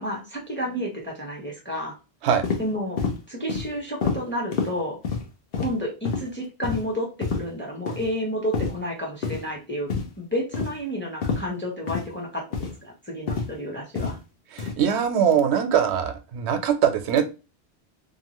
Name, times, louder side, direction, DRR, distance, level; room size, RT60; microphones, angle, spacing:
voice 1, 0.0-1.9 2.6-5.0 5.5-9.9 10.2-14.2, equal, 15° left, -1 dB, 0.7 m, -31 dB
sound 1, 2.4-2.6 3.0-3.2 3.5-3.7 4.0-4.2 4.5-4.7 5.0-5.2 5.5-5.7 6.0-6.2 6.6-6.8 7.2-7.4 7.9-8.1 8.5-8.7 9.2-9.4 9.9-10.1 10.5-10.7 11.2-11.4 11.9-12.0 12.5-12.7 13.3-13.5 14.0-14.1 14.6-14.7, left 5 dB, 65° left, 0.9 m, -27 dB
voice 2, 14.5-17.2, right 8 dB, 85° right, 8 dB, 0.8 m, -22 dB
2.7 x 2.3 x 2.9 m, 0.31 s
omnidirectional pair, 1.1 m